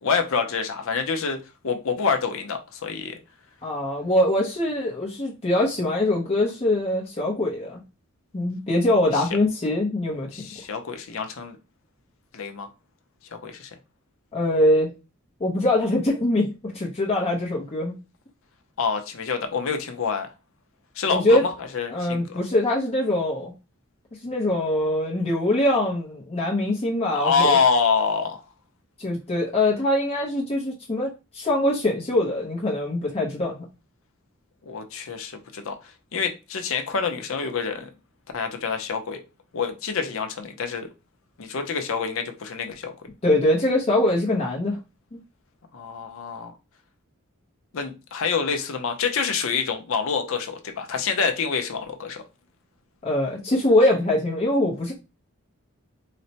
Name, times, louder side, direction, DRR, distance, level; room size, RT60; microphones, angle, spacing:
voice 1, 0.0-1.4 1.6-3.2 9.1-9.2 10.3-11.6 12.3-12.7 13.3-13.7 18.8-20.3 21.0-22.4 27.1-28.4 34.6-37.9 38.3-39.2 39.5-40.9 41.4-43.1 45.7-46.5 47.7-52.2, left 5 dB, 70° left, 0.6 m, -26 dB
voice 2, 3.6-7.8 8.3-10.3 14.3-14.9 15.4-18.0 21.1-21.4 21.9-23.5 24.2-27.6 29.0-33.6 43.2-44.8 53.0-54.9, left 1 dB, 30° left, 0.6 m, -23 dB
4.1 x 2.1 x 2.7 m
head